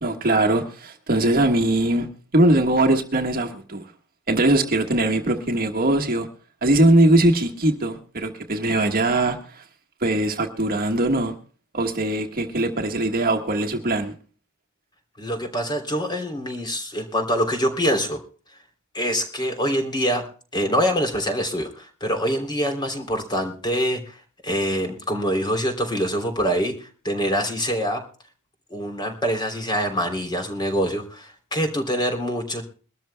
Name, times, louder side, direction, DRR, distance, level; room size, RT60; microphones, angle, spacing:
voice 1, 0.0-2.1 2.3-3.9 4.3-6.3 6.6-9.6 10.0-11.3 11.7-14.1, right 1 dB, 45° right, 1.4 m, -21 dB
voice 2, 15.2-18.2 18.9-20.2 20.5-28.0 28.7-32.6, equal, 20° left, 3.1 m, -25 dB
23.0 x 13.5 x 2.2 m
head